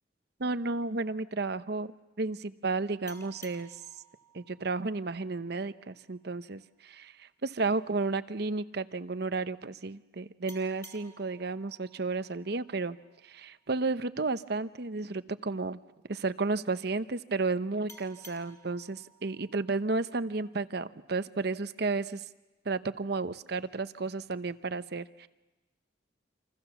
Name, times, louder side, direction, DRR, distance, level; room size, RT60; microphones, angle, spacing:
voice 1, 0.4-3.7 4.3-13.0 13.2-15.8 16.1-22.2 22.6-25.3, right 3 dB, 60° right, 13 dB, 0.9 m, -32 dB
sound 1, 3.1-6.3 10.5-13.7 17.9-20.8, equal, 15° left, 3.0 m, -56 dB
28.0 x 27.0 x 7.1 m, 1.1 s
head